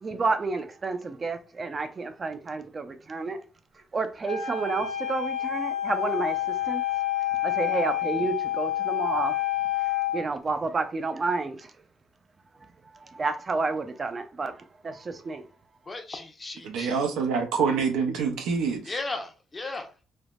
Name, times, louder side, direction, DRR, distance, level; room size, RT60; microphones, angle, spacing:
voice 1, 0.0-3.4 3.9-6.4 6.7-6.8 7.4-9.4 10.1-11.7 13.2-14.5 14.8-15.4, right 3 dB, 40° right, 0.4 m, -30 dB
Wind instrument woodwind instrument, 4.3-10.2, left 13 dB, 85° left, 0.6 m, -28 dB
voice 2, 15.9-17.0 18.8-19.9, left 3 dB, 30° left, 0.7 m, -35 dB
voice 3, 16.6-18.9, right 5 dB, 90° right, 0.5 m, -26 dB
3.4 x 2.0 x 2.3 m
cardioid pair, 70°, 0 cm